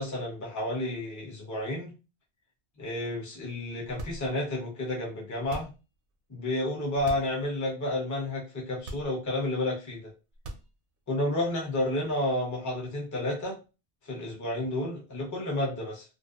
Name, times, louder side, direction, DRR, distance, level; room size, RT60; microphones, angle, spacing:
voice 1, 0.0-1.9 2.8-5.7 6.3-10.1 11.1-13.6 14.0-16.0, left 1 dB, 20° left, -3 dB, 0.6 m, -31 dB
sound 1, 3.9-4.6 5.4-6.0 6.9-7.4 7.8-7.9 8.8-9.5 10.3-11.0, right 2 dB, 65° right, 0.7 m, -41 dB
2.6 x 2.1 x 2.3 m, 0.31 s
omnidirectional pair, 1.1 m